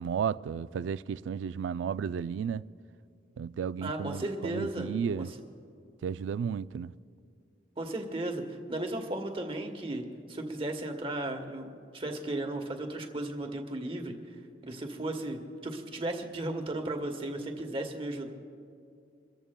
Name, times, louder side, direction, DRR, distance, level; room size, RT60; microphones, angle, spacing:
voice 1, 0.0-2.6 3.4-5.3 6.0-6.9, right 7 dB, 85° right, 0.3 m, -33 dB
voice 2, 3.8-5.3 7.8-14.1 14.6-18.3, right 1 dB, 30° right, 1.1 m, -35 dB
28.5 x 14.0 x 2.2 m
head